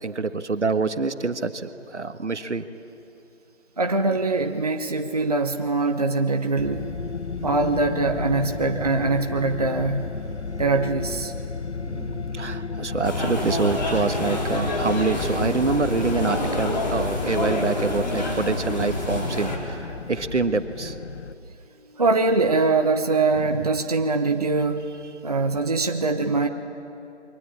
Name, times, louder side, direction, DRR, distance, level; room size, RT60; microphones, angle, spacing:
voice 1, 0.0-2.6 11.8-20.9, right 4 dB, 70° right, 10 dB, 1.5 m, -26 dB
voice 2, 3.8-6.9 7.4-10.0 10.6-11.3 22.0-24.9 25.2-26.5, right 3 dB, 30° right, 5 dB, 0.9 m, -23 dB
sound 1, 6.6-21.3, left 4 dB, 65° left, 1.0 m, -33 dB
sound 2, 13.0-19.6, left 1 dB, 35° left, 3.8 m, -27 dB
28.5 x 23.0 x 8.7 m, 2.8 s
figure-of-eight pair, 170°, 36 cm